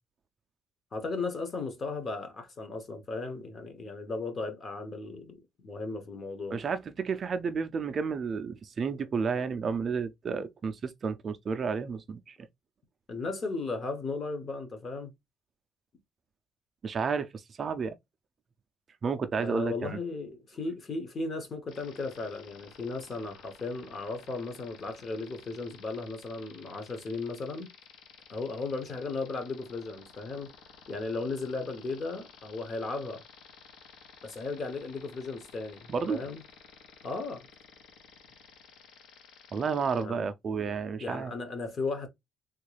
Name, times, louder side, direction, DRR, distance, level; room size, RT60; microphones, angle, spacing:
voice 1, 0.9-6.6 13.1-15.1 19.4-27.7 28.3-30.5 30.9-33.2 34.2-36.4 37.0-37.5 39.9-40.3 41.0-42.1, left 3 dB, 35° left, 0.9 m, -36 dB
voice 2, 6.5-12.4 16.8-17.9 19.0-20.0 35.9-36.2 39.5-41.3, right 5 dB, 35° right, 0.3 m, -31 dB
sound 1, 21.7-40.0, left 6 dB, 85° left, 0.8 m, -53 dB
3.6 x 2.3 x 3.2 m
cardioid pair, 150°, 0 cm